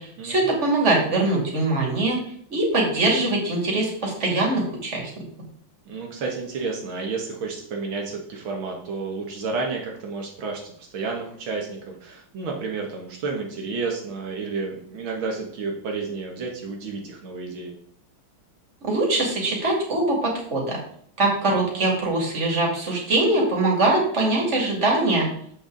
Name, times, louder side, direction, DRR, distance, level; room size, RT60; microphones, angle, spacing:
voice 1, 0.0-2.2 2.5-5.0 18.8-20.8 21.2-25.3, right 2 dB, 35° right, -1 dB, 2.8 m, -22 dB
voice 2, 5.9-17.7, right 4 dB, 80° right, 0 dB, 2.1 m, -31 dB
7.7 x 7.0 x 3.9 m, 0.63 s
omnidirectional pair, 2.2 m